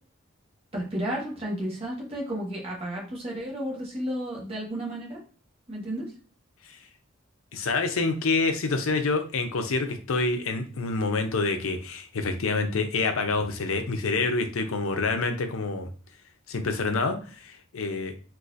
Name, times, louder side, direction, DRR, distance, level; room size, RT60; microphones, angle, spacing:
voice 1, 0.7-5.2 5.7-6.1, equal, 30° right, -3 dB, 1.1 m, -32 dB
voice 2, 7.5-15.9 16.5-17.2 17.4-18.1, left 3 dB, 85° left, 6 dB, 0.6 m, -27 dB
4.0 x 2.5 x 2.5 m, 0.40 s
head